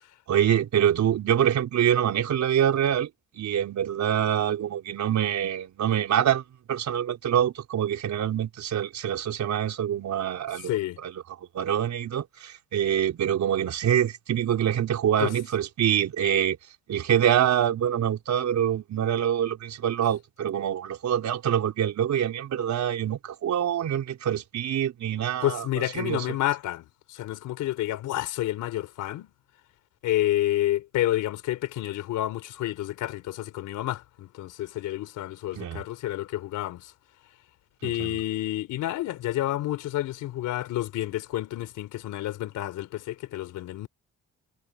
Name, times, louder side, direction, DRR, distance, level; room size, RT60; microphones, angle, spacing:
voice 1, 0.3-3.1 3.4-6.4 6.7-10.7 11.0-11.1 11.5-16.6 16.9-25.6 26.0-26.2 35.6-35.8 37.8-38.2, right 10 dB, 65° right, 4.7 m, -25 dB
voice 2, 10.6-11.0 15.2-15.3 25.4-29.3 30.0-36.9 37.8-43.9, left 14 dB, 90° left, 3.8 m, -29 dB
cardioid pair, 90°, 30 cm